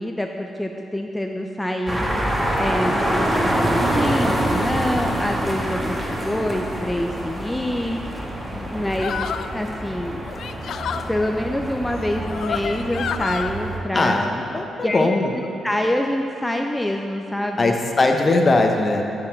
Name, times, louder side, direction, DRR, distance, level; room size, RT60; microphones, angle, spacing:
voice 1, 0.0-2.0 2.5-8.0 8.7-9.1 9.5-10.2 11.1-14.2 14.8-15.1 15.3-17.8, left 1 dB, 10° left, 2 dB, 0.7 m, -26 dB
sound 1, 1.9-13.8, right 1 dB, 10° right, 2.0 m, -26 dB
sound 2, 9.0-9.5 10.3-11.1 12.0-13.5, left 7 dB, 65° left, 0.4 m, -29 dB
voice 2, 13.9-15.3 17.6-19.0, left 2 dB, 40° left, 3 dB, 1.2 m, -20 dB
8.6 x 7.6 x 6.1 m, 2.8 s
hypercardioid pair, 45°, 0 cm